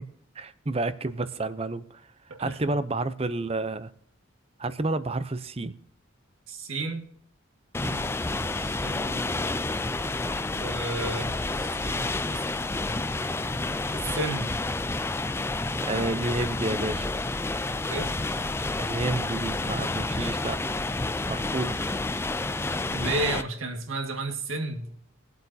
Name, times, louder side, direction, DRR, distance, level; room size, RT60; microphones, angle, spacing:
voice 1, 0.4-2.0 2.4-3.9 4.6-5.8 7.8-8.1 15.8-17.1 18.8-20.6 21.3-21.8, right 2 dB, 30° right, 0.6 m, -30 dB
voice 2, 2.3-2.7 6.5-7.1 8.6-9.4 10.5-12.5 13.9-14.6 17.9-18.1 22.9-25.0, right 2 dB, 75° right, 2.0 m, -33 dB
sound 1, 7.7-23.4, left 2 dB, 10° left, 0.3 m, -29 dB
22.0 x 8.1 x 2.8 m
head